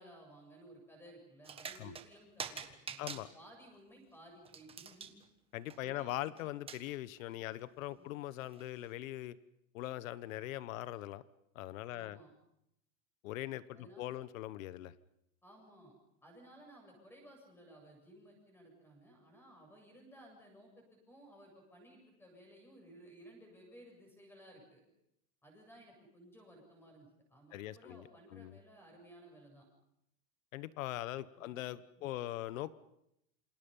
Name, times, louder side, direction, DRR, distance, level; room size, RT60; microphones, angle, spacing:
voice 1, 0.0-5.1 5.8-6.4 8.0-8.2 11.9-12.3 13.7-14.1 15.4-15.9 16.2-24.8 25.4-29.6 31.4-31.7 32.0-32.1, right 1 dB, 5° left, 2 dB, 8.0 m, -58 dB
sound 1, 1.4-2.1 2.4-3.2 4.4-5.2 5.7-6.0 6.4-6.5 6.7-6.8 7.6-7.7 8.5-8.6, right 6 dB, 15° right, 1.4 m, -45 dB
voice 2, 5.5-9.4 9.7-11.2 11.5-12.2 13.2-14.9 27.5-28.6 30.5-32.7, left 14 dB, 80° left, 16 dB, 1.3 m, -41 dB
28.5 x 27.0 x 5.6 m, 0.80 s
supercardioid pair, 165°, 39 cm